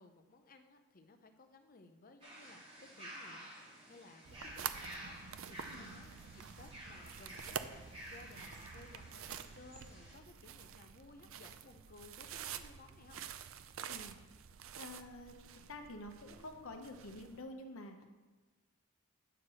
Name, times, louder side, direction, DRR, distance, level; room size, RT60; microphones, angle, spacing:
voice 1, 0.0-3.5 3.9-13.2 18.0-18.1, left 3 dB, 40° left, 7 dB, 0.6 m, -59 dB
sound 1, 2.2-10.2, right 1 dB, 30° right, 2.7 m, -52 dB
sound 2, 4.2-17.4, right 8 dB, 60° right, 0.4 m, -48 dB
voice 2, 14.8-18.0, left 1 dB, 65° left, 5 dB, 0.9 m, -49 dB
9.0 x 4.7 x 6.2 m, 1.3 s
head